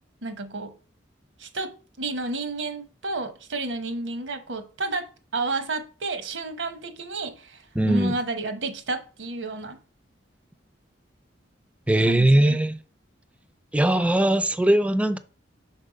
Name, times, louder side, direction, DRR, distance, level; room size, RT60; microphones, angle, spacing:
voice 1, 0.2-0.7 1.4-1.7 2.0-9.8 12.0-12.6, right 3 dB, 80° right, 1.0 m, -31 dB
voice 2, 7.8-8.1 11.9-12.8 13.7-15.2, right 1 dB, 5° right, 0.4 m, -20 dB
5.4 x 4.3 x 5.1 m
head